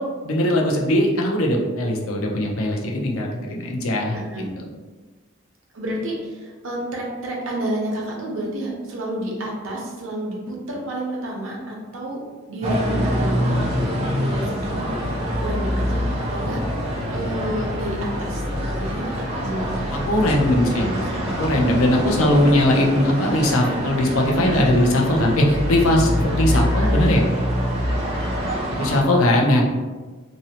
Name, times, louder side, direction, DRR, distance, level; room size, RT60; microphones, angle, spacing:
voice 1, 0.2-4.1 20.1-20.9 21.4-27.2 28.8-29.8, left 1 dB, 85° left, 0 dB, 0.5 m, -19 dB
voice 2, 4.1-4.5 5.7-12.2 12.5-16.0 16.3-19.9 20.6-21.3 26.8-27.0 28.6-28.9, right 1 dB, 70° right, -2 dB, 0.6 m, -30 dB
sound 1, 12.6-29.0, equal, 30° right, 0.5 m, -25 dB
2.6 x 2.0 x 2.7 m, 1.3 s
head